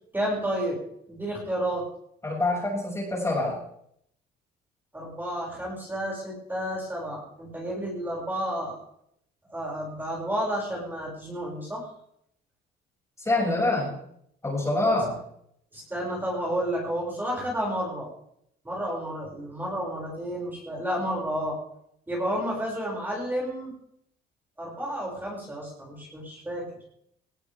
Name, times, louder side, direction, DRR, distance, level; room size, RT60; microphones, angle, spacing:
voice 1, 0.1-0.8 1.1-1.8 4.9-8.8 9.5-11.8 15.7-18.1 18.6-21.6 22.1-23.7 24.6-26.6, equal, 10° right, -3 dB, 6.8 m, -31 dB
voice 2, 2.2-3.6 13.2-13.9 14.4-15.2, left 2 dB, 15° left, -2 dB, 7.0 m, -25 dB
19.0 x 18.0 x 3.7 m, 0.71 s
cardioid pair, 110°, 17 cm